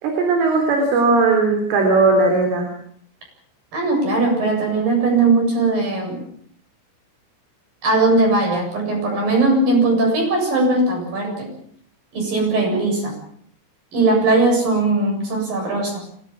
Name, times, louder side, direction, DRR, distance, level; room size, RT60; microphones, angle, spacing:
voice 1, 0.0-2.7, right 3 dB, 80° right, 3 dB, 6.3 m, -17 dB
voice 2, 3.7-6.2 7.8-11.5 12.1-13.1 13.9-16.0, right 2 dB, 45° right, 2 dB, 9.2 m, -19 dB
26.5 x 18.0 x 7.5 m, 0.63 s
omnidirectional pair, 5.7 m